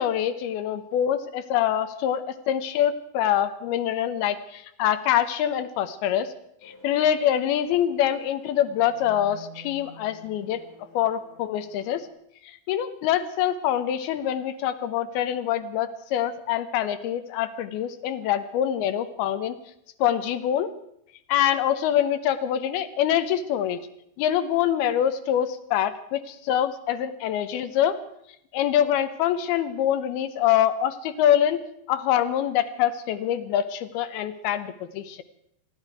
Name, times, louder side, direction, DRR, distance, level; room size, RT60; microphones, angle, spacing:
voice 1, 0.0-6.3 6.6-12.1 12.4-19.6 20.0-20.7 21.3-23.9 24.2-28.0 28.5-31.6 31.9-35.2, left 10 dB, 85° left, 10 dB, 2.8 m, -25 dB
sound 1, 6.6-12.1, left 1 dB, 60° left, 3.3 m, -49 dB
28.0 x 11.0 x 4.7 m, 0.76 s
omnidirectional pair, 4.4 m